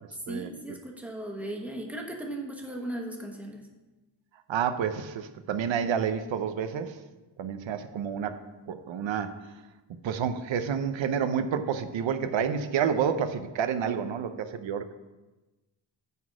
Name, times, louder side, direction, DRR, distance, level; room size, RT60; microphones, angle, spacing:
voice 1, 0.3-3.6, right 1 dB, 5° right, 0 dB, 1.1 m, -37 dB
voice 2, 4.5-7.0 7.4-8.4 8.7-9.4 10.0-14.9, right 7 dB, 85° right, 9 dB, 0.7 m, -29 dB
9.5 x 4.1 x 7.2 m, 1.1 s
wide cardioid pair, 165°, 45 cm